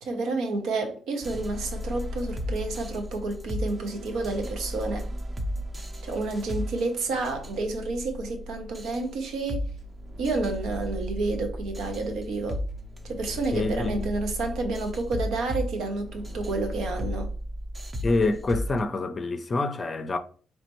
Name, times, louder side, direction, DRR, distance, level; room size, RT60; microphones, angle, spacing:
voice 1, 0.0-5.1 6.0-9.7 10.2-12.6 13.0-17.3, right 3 dB, 80° right, 0.8 m, -30 dB
sound 1, 1.2-18.8, left 1 dB, 30° right, 0.7 m, -35 dB
voice 2, 13.5-14.1 18.0-20.2, left 2 dB, 35° left, 0.5 m, -26 dB
4.2 x 3.2 x 3.0 m
cardioid pair, 90°, 0 cm